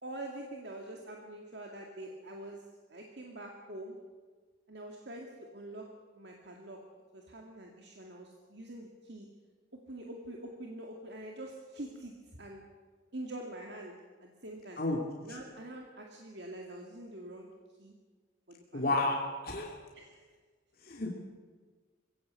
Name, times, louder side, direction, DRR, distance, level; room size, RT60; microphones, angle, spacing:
voice 1, 0.0-2.6 2.9-4.0 4.7-5.9 6.1-6.8 7.1-9.3 9.9-12.7 13.1-13.9 14.2-14.8 15.2-17.5 17.8-17.9 18.5-19.0 19.9-20.2, right 1 dB, 60° right, 0 dB, 2.3 m, -45 dB
voice 2, 18.7-19.2 19.4-19.7 20.8-21.2, left 2 dB, 50° left, -1 dB, 2.5 m, -31 dB
22.0 x 16.5 x 8.3 m, 1.5 s
head